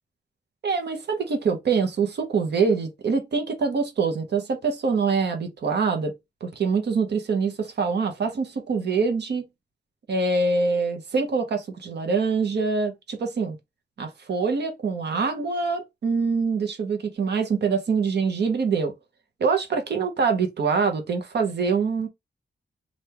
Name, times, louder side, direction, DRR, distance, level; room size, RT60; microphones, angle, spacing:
voice 1, 0.6-6.1 6.4-9.4 10.1-13.6 14.0-18.9 19.4-22.1, right 5 dB, 70° right, 1.0 m, -24 dB
3.4 x 2.6 x 2.9 m
wide cardioid pair, 150°, 18 cm